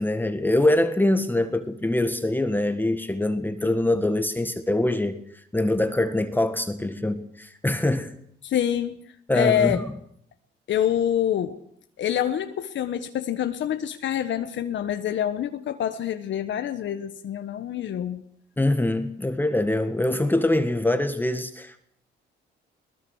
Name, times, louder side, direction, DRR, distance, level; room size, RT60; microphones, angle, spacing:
voice 1, 0.0-5.2 5.5-8.1 9.3-9.8 18.6-21.8, left 1 dB, 10° left, 8 dB, 1.6 m, -24 dB
voice 2, 8.4-9.0 9.3-9.8 10.7-11.6 12.0-18.2, left 10 dB, 70° left, 8 dB, 1.3 m, -26 dB
22.5 x 20.0 x 6.4 m, 0.68 s
cardioid pair, 90°, 20 cm